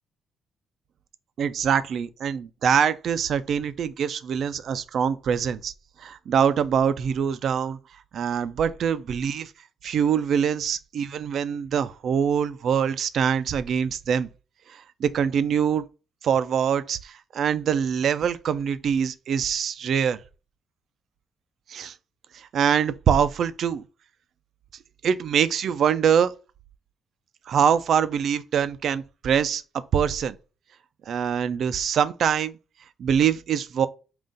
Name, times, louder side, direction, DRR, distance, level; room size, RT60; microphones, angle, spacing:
voice 1, 1.4-5.7 6.0-7.8 8.1-9.5 9.8-14.3 14.7-15.8 16.2-20.2 21.7-21.9 22.3-23.8 25.0-26.3 27.5-29.6 29.9-30.4 31.1-32.6 33.0-33.9, right 7 dB, 65° right, 0.4 m, -24 dB
3.8 x 2.4 x 3.8 m
cardioid pair, 90°, 0 cm